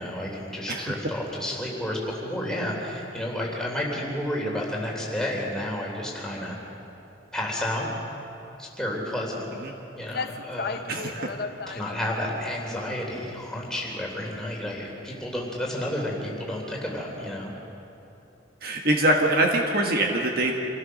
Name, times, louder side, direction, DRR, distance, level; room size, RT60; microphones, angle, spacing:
voice 1, 0.0-6.6 7.3-7.9 8.6-9.4 10.0-10.9 11.7-17.5, left 1 dB, 5° left, -3 dB, 3.3 m, -31 dB
sound 1, 9.7-9.8 10.1-12.1, left 4 dB, 55° left, 0.7 m, -34 dB
voice 2, 10.9-11.3 18.6-20.6, right 1 dB, 50° right, 1 dB, 1.6 m, -24 dB
27.0 x 16.0 x 6.5 m, 2.9 s
head